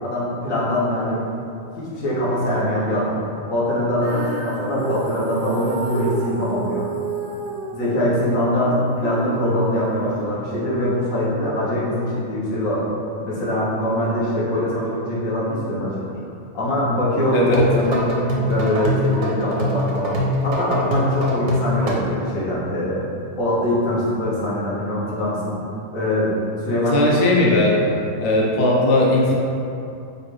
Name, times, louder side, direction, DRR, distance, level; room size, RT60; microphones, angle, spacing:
voice 1, 0.0-1.2 1.8-3.2 3.5-6.8 7.7-12.9 13.2-16.2 16.5-20.2 20.4-23.0 23.4-25.5 25.9-26.4 26.6-27.2, left 1 dB, 80° left, -7 dB, 1.3 m, -23 dB
Female singing, 4.0-10.2, right 3 dB, 65° right, 0.5 m, -31 dB
sound 1, 17.3-21.9, left 1 dB, 85° right, 1.1 m, -23 dB
voice 2, 26.9-27.8 28.2-29.3, left 1 dB, 55° left, -3 dB, 0.7 m, -17 dB
5.1 x 2.3 x 3.1 m, 2.6 s
omnidirectional pair, 1.4 m